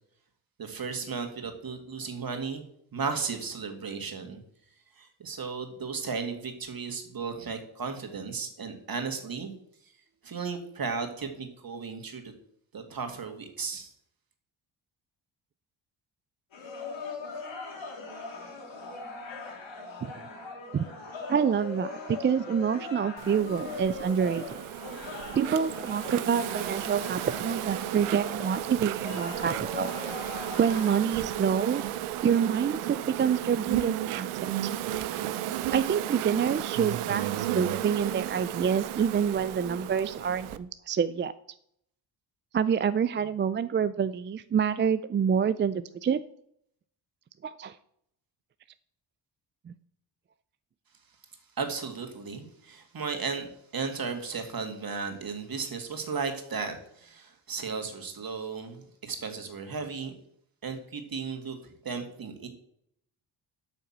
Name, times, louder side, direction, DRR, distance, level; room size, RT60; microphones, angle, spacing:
voice 1, 0.6-2.6 2.9-4.4 5.0-9.5 10.2-12.3 12.7-13.9 51.6-60.1 60.6-62.5, right 5 dB, 45° right, 5 dB, 2.2 m, -35 dB
sound 1, 16.5-31.0, left 3 dB, 70° left, 3.4 m, -40 dB
voice 2, 21.3-24.6 25.3-29.9 30.6-31.8 32.2-34.5 35.7-41.3 42.5-46.2 47.4-47.8 49.7-49.8, right 7 dB, 25° right, 14 dB, 0.3 m, -27 dB
Insect, 23.2-40.6, right 12 dB, 85° right, 0.7 m, -34 dB
8.9 x 5.7 x 7.3 m, 0.71 s
cardioid pair, 70°, 48 cm